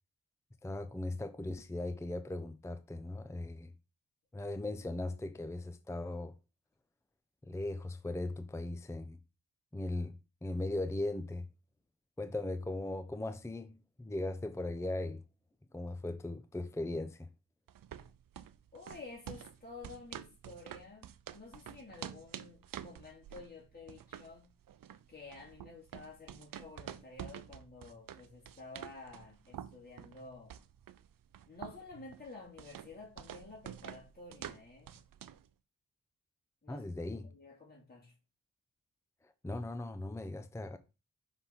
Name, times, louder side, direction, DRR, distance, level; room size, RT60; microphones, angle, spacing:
voice 1, 0.6-3.7 4.3-6.3 7.4-9.2 9.7-10.1 10.4-11.5 12.2-15.2 15.7-17.3 36.7-37.3 39.4-40.8, left 2 dB, 5° left, 0.6 m, -38 dB
sound 1, 17.7-35.5, right 10 dB, 60° right, 0.6 m, -49 dB
voice 2, 18.7-24.5 25.1-30.6 31.5-35.0 36.6-36.9 37.2-38.1, left 3 dB, 25° left, 2.6 m, -51 dB
5.8 x 3.6 x 5.5 m
supercardioid pair, 40°, 39 cm